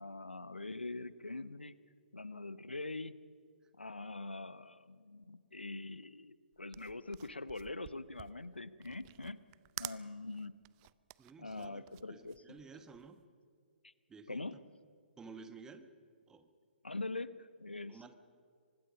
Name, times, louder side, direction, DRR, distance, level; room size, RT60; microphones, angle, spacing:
voice 1, 0.0-1.7 2.1-3.2 3.8-9.4 9.8-10.5 11.4-12.6 13.8-13.9 14.3-14.6 16.8-18.1, left 2 dB, 85° left, 16 dB, 0.8 m, -43 dB
sound 1, 6.5-13.2, right 22 dB, 30° right, 0.5 m, -50 dB
voice 2, 11.2-13.2 14.1-14.4 15.2-15.9 16.3-16.5 17.9-18.2, right 4 dB, 10° right, 10 dB, 1.2 m, -53 dB
24.5 x 20.0 x 5.5 m, 2.3 s
figure-of-eight pair, 125°, 6 cm